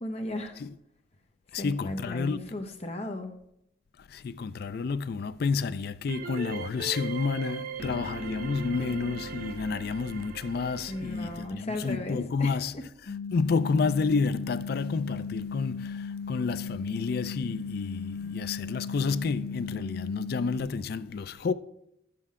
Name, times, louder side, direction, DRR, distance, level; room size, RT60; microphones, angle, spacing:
voice 1, 0.0-0.6 1.5-3.3 10.9-12.8, left 1 dB, 30° left, 0.9 m, -36 dB
voice 2, 1.5-2.5 4.1-12.7 13.3-21.5, left 4 dB, 50° left, 0.3 m, -30 dB
sound 1, 6.1-11.5, right 3 dB, 45° right, 0.5 m, -39 dB
sound 2, 13.1-20.6, left 5 dB, 85° left, 0.8 m, -36 dB
11.5 x 7.6 x 3.7 m
head